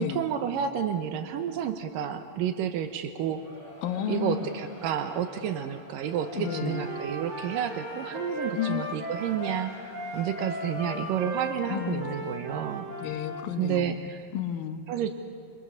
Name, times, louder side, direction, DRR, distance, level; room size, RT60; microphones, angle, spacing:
voice 1, 0.0-3.5 4.1-12.9 13.6-14.3 14.9-15.1, right 9 dB, 80° right, 8 dB, 2.5 m, -30 dB
Crowd, 3.2-11.7, left 2 dB, 40° left, 5.7 m, -48 dB
voice 2, 3.8-4.5 6.4-6.9 8.6-8.8 11.7-12.3 13.0-14.0 14.3-14.8, left 10 dB, 85° left, 7 dB, 2.7 m, -32 dB
Wind instrument woodwind instrument, 6.4-13.4, equal, 35° right, 4.3 m, -36 dB
26.5 x 24.5 x 7.0 m, 2.1 s
omnidirectional pair, 4.0 m